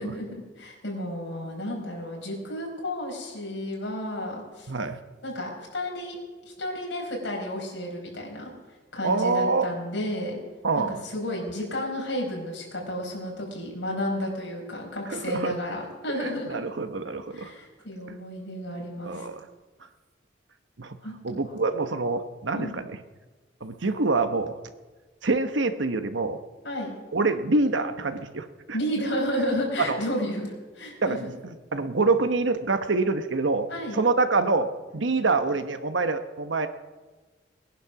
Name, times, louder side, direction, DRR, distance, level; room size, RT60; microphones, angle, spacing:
voice 1, 0.0-4.7 5.2-6.2 6.4-8.5 8.9-10.4 10.7-16.6 17.3-19.3 21.0-21.4 22.5-22.8 26.6-26.9 28.7-31.3 33.7-34.0, equal, 65° left, -1 dB, 4.9 m, -32 dB
voice 2, 4.7-5.0 9.0-9.7 10.6-11.0 15.1-15.5 16.2-17.5 18.1-18.2 19.0-19.4 20.8-21.0 21.2-23.0 23.6-24.6 25.2-26.4 27.1-28.8 29.8-30.0 31.0-33.7 33.9-36.7, right 3 dB, 75° right, 9 dB, 1.1 m, -26 dB
19.5 x 10.5 x 6.0 m, 1.3 s
head